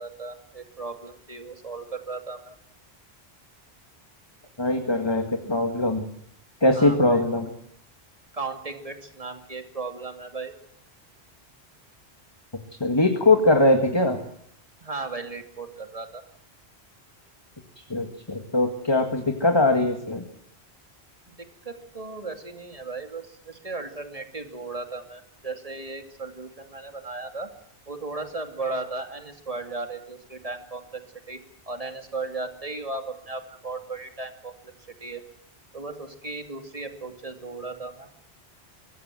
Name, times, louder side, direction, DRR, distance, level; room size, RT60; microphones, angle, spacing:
voice 1, 0.0-2.5 6.7-7.2 8.3-10.5 14.8-16.2 21.3-27.5 27.9-31.0 31.3-31.4 31.7-34.5 35.0-35.2 35.7-38.1, right 3 dB, 35° right, 5 dB, 2.7 m, -36 dB
voice 2, 4.6-6.1 6.6-7.5 12.8-14.2 17.8-20.2, left 2 dB, 25° left, 5 dB, 2.1 m, -21 dB
24.0 x 19.5 x 7.7 m, 0.71 s
omnidirectional pair, 1.1 m